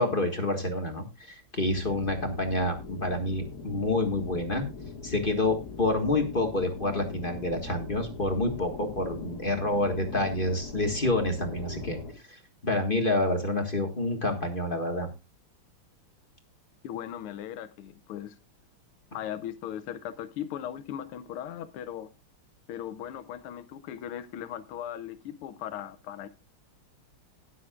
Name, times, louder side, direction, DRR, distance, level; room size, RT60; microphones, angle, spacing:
voice 1, 0.0-4.7 5.0-12.0 12.3-15.1, left 2 dB, 25° left, 1.6 m, -28 dB
sound 1, 1.7-12.1, left 4 dB, 50° left, 2.2 m, -41 dB
voice 2, 16.8-18.4 19.1-22.1 22.7-26.3, left 10 dB, 85° left, 1.7 m, -38 dB
20.0 x 7.5 x 2.4 m
omnidirectional pair, 2.3 m